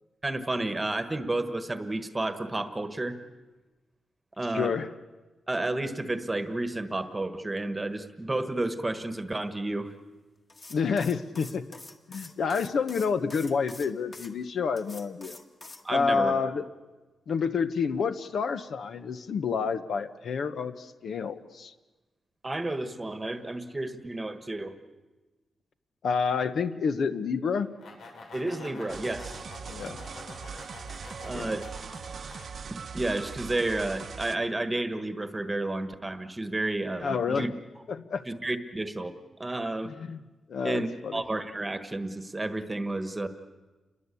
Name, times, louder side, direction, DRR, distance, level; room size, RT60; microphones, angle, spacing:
voice 1, 0.2-3.2 4.4-4.7 5.5-9.9 15.8-16.3 22.4-24.7 28.3-29.4 31.2-31.6 32.9-37.5 38.3-39.1 39.4-39.9 40.6-43.3, right 2 dB, 15° right, 10 dB, 1.4 m, -31 dB
voice 2, 4.5-4.9 10.7-11.8 12.1-15.4 15.9-16.7 17.3-21.7 26.0-27.7 29.7-30.0 31.3-31.6 37.0-37.5 37.9-38.2 39.8-40.2 40.5-41.2, left 5 dB, 55° left, 10 dB, 1.1 m, -29 dB
sound 1, 10.5-14.3 14.8-15.8, left 2 dB, 25° left, 1.9 m, -46 dB
sound 2, 27.5-32.5, left 3 dB, 80° left, 6.1 m, -47 dB
sound 3, 28.9-34.4, right 6 dB, 45° right, 0.9 m, -40 dB
29.0 x 22.0 x 8.4 m, 1.2 s
wide cardioid pair, 175°, 0 cm